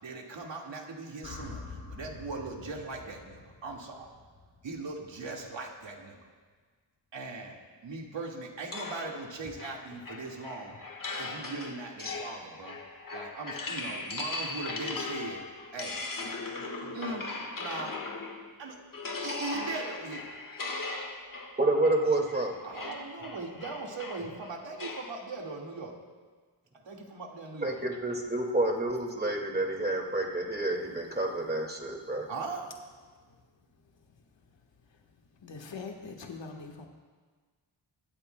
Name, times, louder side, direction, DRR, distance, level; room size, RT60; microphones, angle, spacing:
voice 1, 0.0-4.1 4.6-6.2 7.1-10.8 11.2-12.8 13.1-15.4 15.7-16.0 16.9-17.3 17.6-18.0 18.6-18.8 19.2-20.3 22.6-26.0 26.7-27.9 32.3-32.7, right 3 dB, 85° right, -1 dB, 2.0 m, -39 dB
sound 1, 1.2-5.4, left 4 dB, 75° left, 2.7 m, -47 dB
sound 2, 8.7-18.5 18.9-25.2, left 3 dB, 50° left, 1.5 m, -39 dB
voice 2, 21.6-22.6 27.6-32.3, right 2 dB, 20° right, 0 dB, 2.1 m, -29 dB
voice 3, 35.4-36.9, left 4 dB, 90° left, 1 dB, 1.4 m, -43 dB
24.0 x 13.0 x 2.2 m, 1.5 s
wide cardioid pair, 90°, 43 cm